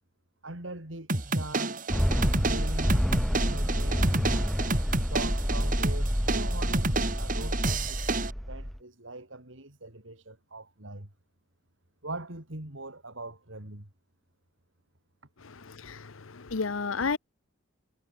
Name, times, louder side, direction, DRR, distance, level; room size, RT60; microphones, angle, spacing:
voice 1, 0.4-1.8 2.4-3.0 3.4-4.1 5.0-11.1 12.0-13.9, right 2 dB, 70° right, 4.0 m, -42 dB
sound 1, 1.1-8.3, right 2 dB, 40° right, 2.7 m, -30 dB
sound 2, 1.9-8.8, equal, ahead, 0.7 m, -28 dB
voice 2, 15.4-17.2, left 4 dB, 85° left, 0.9 m, -32 dB
head